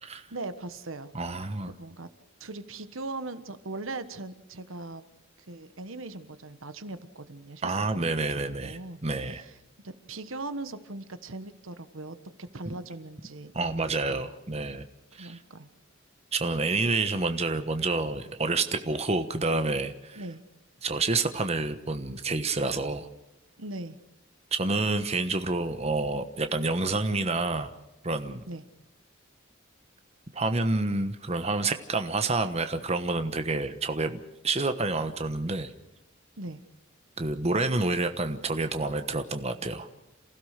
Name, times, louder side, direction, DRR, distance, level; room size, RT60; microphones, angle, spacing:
voice 1, 0.3-1.1 1.7-2.1 2.4-5.0 5.5-9.0 9.3-9.5 9.8-13.5 13.8-14.3 15.1-15.7 20.1-20.4 23.6-24.0 28.4-28.6 36.4-36.6, right 2 dB, 75° right, 11 dB, 1.4 m, -40 dB
voice 2, 1.1-1.7 7.6-9.4 12.6-12.7 13.5-14.9 15.1-15.4 16.3-20.2 20.8-23.1 24.5-27.7 28.0-28.4 30.3-35.7 37.2-39.9, right 3 dB, 30° right, 8 dB, 1.2 m, -28 dB
28.0 x 16.0 x 6.7 m, 0.92 s
head